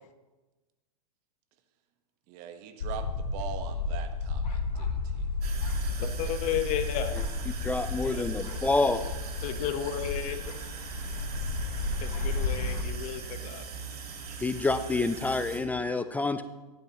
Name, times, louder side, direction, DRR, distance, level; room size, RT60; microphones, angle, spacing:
voice 1, 2.3-5.3 5.8-6.6, right 8 dB, 45° right, 7 dB, 1.3 m, -43 dB
sound 1, 2.8-12.8, left 3 dB, 85° left, 1.3 m, -33 dB
sound 2, 5.4-15.6, right 6 dB, 75° right, 2.0 m, -41 dB
voice 2, 6.0-7.2 8.0-8.8 9.4-10.5 12.0-13.6, left 10 dB, 35° left, 8 dB, 1.1 m, -33 dB
voice 3, 7.6-9.0 14.4-16.4, left 3 dB, 10° left, 11 dB, 0.3 m, -27 dB
15.0 x 10.5 x 3.0 m, 1.1 s
hypercardioid pair, 120°, 20 cm